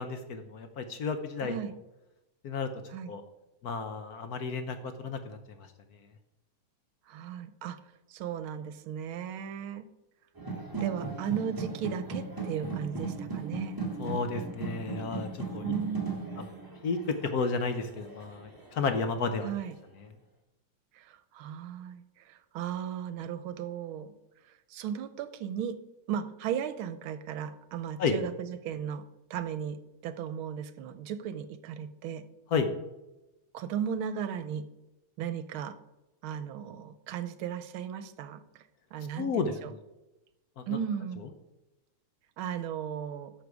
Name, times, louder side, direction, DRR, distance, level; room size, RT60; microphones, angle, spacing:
voice 1, 0.0-1.6 2.4-2.7 3.1-3.2 3.6-5.4 14.0-15.6 16.4-16.5 16.8-19.5 28.0-28.2 32.5-32.7 39.2-39.5 40.6-40.7, left 4 dB, 60° left, 8 dB, 1.0 m, -32 dB
voice 2, 1.4-1.7 2.9-3.1 7.1-7.8 8.1-9.9 10.8-13.8 15.6-16.3 19.4-19.7 20.9-24.1 24.7-25.8 26.1-29.0 29.3-32.2 33.5-34.7 35.2-35.8 36.2-38.4 38.9-39.7 40.7-41.2 42.4-43.3, right 8 dB, 80° right, 12 dB, 1.5 m, -36 dB
sound 1, 10.4-19.3, right 3 dB, 10° right, 1.4 m, -38 dB
11.5 x 6.7 x 4.7 m, 0.98 s
omnidirectional pair, 2.4 m